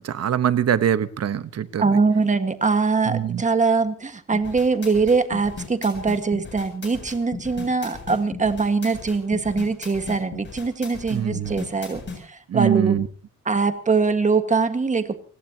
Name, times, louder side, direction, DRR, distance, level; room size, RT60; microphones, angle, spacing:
voice 1, 0.0-2.0 3.1-3.4 11.1-11.5 12.5-13.1, right 9 dB, 55° right, 14 dB, 1.0 m, -23 dB
voice 2, 1.8-12.9 13.4-15.2, right 4 dB, 25° right, 9 dB, 1.6 m, -22 dB
sound 1, 4.3-12.2, left 4 dB, 40° left, 7.6 m, -36 dB
30.0 x 17.0 x 2.9 m, 0.39 s
wide cardioid pair, 160°, 29 cm